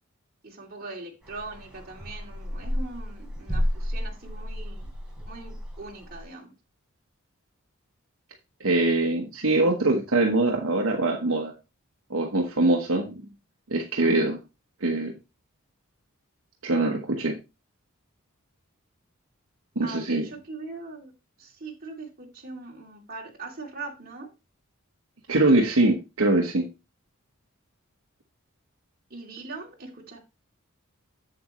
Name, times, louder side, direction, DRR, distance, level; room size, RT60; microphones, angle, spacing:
voice 1, 0.4-4.9 5.3-6.5 19.8-21.1 21.4-24.3 29.1-30.2, right 3 dB, 45° right, 2.6 m, -41 dB
sound 1, 1.2-6.2, equal, 5° right, 3.8 m, -32 dB
voice 2, 8.6-11.5 12.1-13.2 13.7-14.4 14.8-15.1 16.6-17.4 19.7-20.3 25.3-26.7, right 2 dB, 75° right, 1.2 m, -23 dB
7.8 x 7.7 x 3.1 m
head